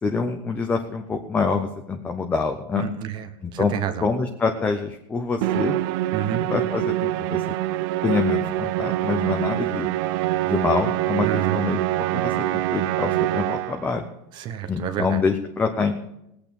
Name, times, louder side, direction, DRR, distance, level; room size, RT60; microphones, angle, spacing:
voice 1, 0.0-2.9 3.4-3.7 4.0-5.8 6.5-7.4 8.0-9.9 10.5-14.1 14.7-16.1, left 5 dB, 10° left, 5 dB, 0.6 m, -26 dB
voice 2, 2.8-4.1 6.1-6.4 11.2-11.6 14.4-15.2, right 9 dB, 35° right, 10 dB, 1.1 m, -29 dB
Musical instrument, 5.4-13.9, right 15 dB, 50° right, 0.5 m, -25 dB
18.5 x 8.5 x 5.3 m, 0.83 s
supercardioid pair, 170°, 14 cm